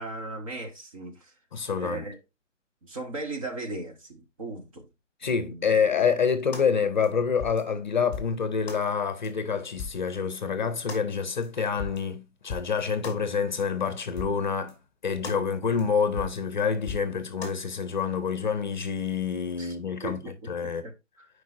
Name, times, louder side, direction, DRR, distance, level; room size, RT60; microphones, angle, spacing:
voice 1, 0.0-1.3 1.8-2.2 2.8-4.9 5.2-5.8 15.1-15.3 19.6-19.7 20.0-21.3, right 2 dB, 25° right, 1.2 m, -38 dB
voice 2, 1.5-2.1 5.2-14.8 15.0-20.8, left 6 dB, 40° left, 0.8 m, -27 dB
sound 1, 6.5-6.7 7.0-7.1 7.4-7.6 8.1-8.3 8.7-8.8 9.2-9.3 9.8-10.0 10.3-10.4 10.9-11.0 11.4-11.5 11.8-12.0 12.5-12.7 13.0-13.2 13.6-13.7 14.2-14.4 14.7-14.8 15.2-15.4 15.8-15.9 16.2-16.4 16.9-17.1 17.4-17.6, left 5 dB, 5° left, 1.8 m, -37 dB
9.1 x 4.8 x 2.5 m
figure-of-eight pair, 155°, 37 cm